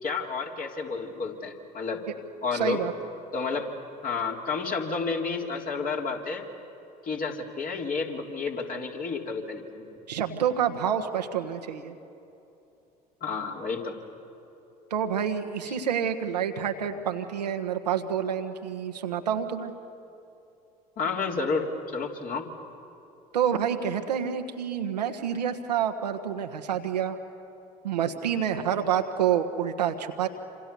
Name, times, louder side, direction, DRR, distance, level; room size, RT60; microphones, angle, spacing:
voice 1, 0.0-2.0 2.4-2.8 3.3-3.7 4.0-6.4 7.0-9.9 13.2-14.0 21.0-22.5, left 4 dB, 45° left, 0 dB, 3.8 m, -31 dB
voice 2, 2.5-2.9 10.1-12.0 14.9-19.7 23.3-27.2 27.8-30.3, right 8 dB, 85° right, 6 dB, 1.4 m, -28 dB
27.5 x 26.5 x 6.9 m, 2.8 s
hypercardioid pair, 65°, 21 cm